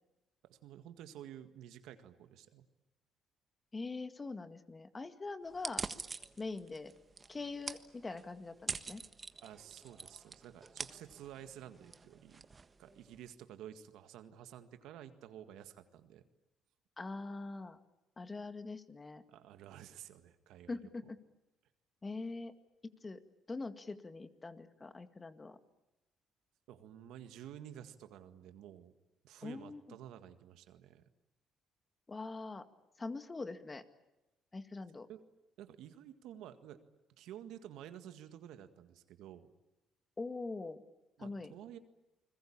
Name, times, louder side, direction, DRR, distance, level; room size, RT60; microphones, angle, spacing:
voice 1, 0.4-2.7 9.4-12.5 12.8-16.2 19.3-21.1 26.7-28.9 29.2-31.0 35.1-35.2 35.6-36.8 37.1-39.5 41.2-41.8, right 11 dB, 85° right, 9 dB, 1.8 m, -52 dB
voice 2, 3.7-5.8 6.4-6.9 7.3-9.0 17.0-17.8 18.2-19.2 20.7-21.2 22.0-22.5 23.0-23.2 23.5-25.6 29.4-29.8 32.1-32.7 33.0-33.8 34.5-35.1 40.2-40.8 41.2-41.5, left 3 dB, 25° left, 9 dB, 2.0 m, -43 dB
sound 1, 5.5-13.3, right 4 dB, 30° right, 1.4 m, -46 dB
29.5 x 21.5 x 8.8 m, 0.95 s
cardioid pair, 90°, 0 cm